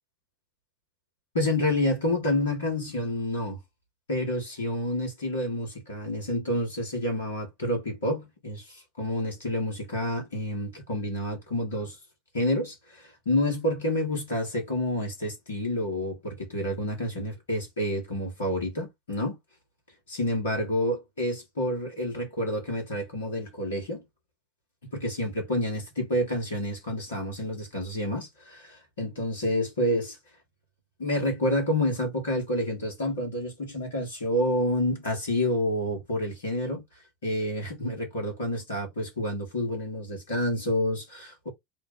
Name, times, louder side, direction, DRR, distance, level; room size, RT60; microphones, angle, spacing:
voice 1, 1.3-3.6 4.1-8.6 9.0-12.0 12.3-19.4 20.1-24.0 24.9-30.2 31.0-36.8 37.2-41.5, left 1 dB, 80° left, 1.9 m, -29 dB
3.2 x 2.3 x 4.1 m
figure-of-eight pair, 75°, 0 cm